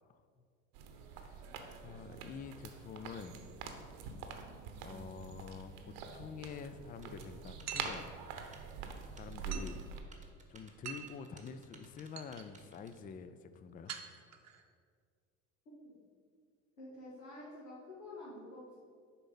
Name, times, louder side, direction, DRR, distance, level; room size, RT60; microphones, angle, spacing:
voice 1, 0.1-0.4 1.1-1.5 1.8-3.4 4.3-4.5 4.8-8.1 9.1-9.8 10.5-13.9, left 6 dB, 25° left, 11 dB, 0.4 m, -47 dB
sound 1, 0.7-10.0, right 6 dB, 70° right, 0.9 m, -46 dB
Typing, 7.0-13.0, right 3 dB, 20° right, 1.1 m, -61 dB
sound 2, 7.7-8.0 9.5-9.8 10.8-11.2 11.8-11.9 12.2-12.4 13.9-14.6, right 8 dB, 40° right, 0.8 m, -44 dB
voice 2, 9.5-9.8 15.8-16.0 16.8-18.8, left 1 dB, 85° left, -10 dB, 1.9 m, -49 dB
6.8 x 4.3 x 5.5 m, 2.1 s
hypercardioid pair, 70°, 40 cm